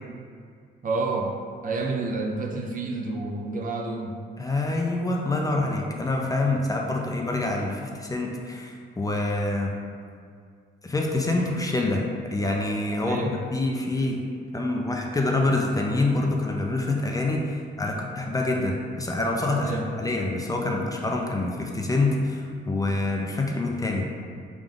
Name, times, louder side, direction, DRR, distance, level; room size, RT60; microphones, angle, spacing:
voice 1, 0.8-1.4 1.6-4.2 13.0-13.4 19.6-20.0, right 3 dB, 45° right, 1 dB, 0.5 m, -29 dB
voice 2, 4.4-9.7 10.8-12.1 12.3-13.2 13.5-14.2 14.5-24.1, left 2 dB, 20° left, 0 dB, 0.4 m, -26 dB
3.6 x 2.4 x 3.7 m, 2.2 s
cardioid pair, 90°, 20 cm